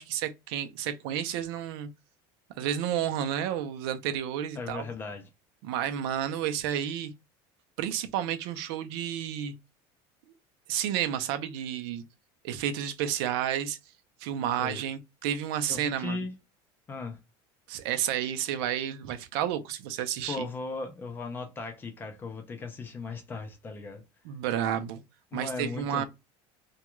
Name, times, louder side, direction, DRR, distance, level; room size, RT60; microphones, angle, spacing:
voice 1, 0.0-1.9 2.6-4.8 5.6-7.1 7.8-9.5 10.7-12.0 12.4-13.8 14.2-16.3 17.7-20.5 24.2-25.0 25.3-26.0, right 10 dB, 75° right, 0.5 m, -31 dB
voice 2, 4.6-5.3 14.6-14.8 15.7-16.4 16.9-17.2 20.3-24.0 25.3-26.0, left 3 dB, 15° left, 0.4 m, -37 dB
2.3 x 2.2 x 2.9 m
cardioid pair, 175°, 13 cm